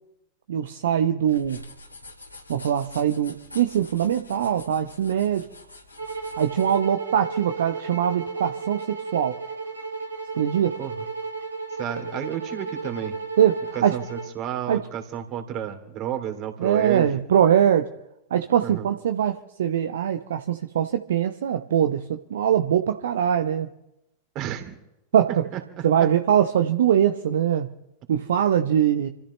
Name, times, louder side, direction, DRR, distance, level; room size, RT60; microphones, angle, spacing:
voice 1, 0.5-1.6 2.5-5.5 6.4-9.4 10.4-10.8 13.4-14.0 14.7-14.9 16.6-17.9 18.3-23.7 25.1-27.7 28.1-29.1, right 9 dB, 60° right, 7 dB, 0.8 m, -22 dB
sound 1, 1.2-6.8, left 2 dB, 85° left, 3.5 m, -46 dB
sound 2, 6.0-14.3, right 4 dB, 80° right, 3.1 m, -34 dB
voice 2, 11.8-13.2 13.7-17.2 18.6-18.9 24.3-24.8 25.5-26.1, right 10 dB, 35° right, 6 dB, 2.8 m, -31 dB
29.0 x 14.0 x 3.2 m, 0.90 s
figure-of-eight pair, 90°, 0 cm